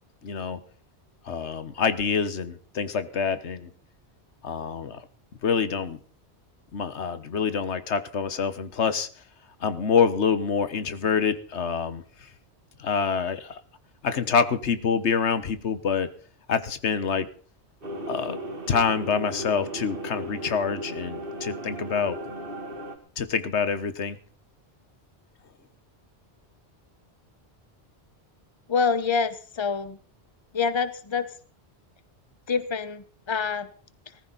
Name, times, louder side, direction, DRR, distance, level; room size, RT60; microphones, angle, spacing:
voice 1, 0.2-0.6 1.2-3.7 4.4-5.0 5.4-6.0 6.7-9.1 9.6-12.3 12.8-13.6 14.0-16.1 16.5-17.3 18.1-18.4 18.7-22.2 23.2-24.2, left 6 dB, 85° left, 12 dB, 1.4 m, -26 dB
sound 1, 17.8-23.0, right 1 dB, 55° right, 2.7 m, -36 dB
voice 2, 28.7-30.0 30.5-31.3 32.5-33.7, left 5 dB, 25° left, 13 dB, 1.0 m, -26 dB
19.5 x 14.5 x 4.0 m, 0.42 s
omnidirectional pair, 1.1 m